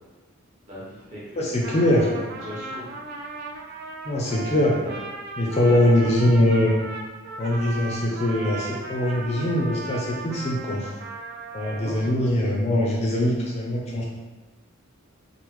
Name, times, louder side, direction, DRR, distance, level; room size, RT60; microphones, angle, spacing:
voice 1, 0.7-1.5 2.3-2.9 4.6-5.0 5.6-6.1 11.7-12.3, equal, 35° right, -8 dB, 1.1 m, -38 dB
voice 2, 1.4-2.1 4.1-4.7 5.4-6.7 7.4-10.9 11.5-14.0, left 1 dB, 30° left, -2 dB, 0.4 m, -22 dB
Trumpet, 1.4-12.3, right 3 dB, 50° right, 0.3 m, -37 dB
3.3 x 2.0 x 3.0 m, 1.2 s
head